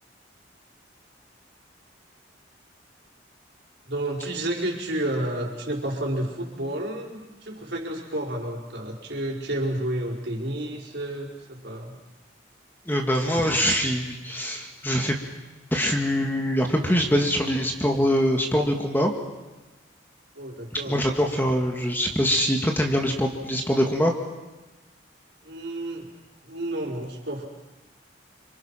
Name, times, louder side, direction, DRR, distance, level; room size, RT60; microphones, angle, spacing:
voice 1, 3.9-12.0 20.4-21.0 25.4-26.1 26.4-27.4, right 1 dB, 60° right, 0 dB, 5.4 m, -30 dB
voice 2, 12.9-15.2 15.7-19.1 20.9-24.1, equal, 10° left, 2 dB, 2.2 m, -23 dB
29.0 x 26.0 x 6.0 m, 1.1 s
head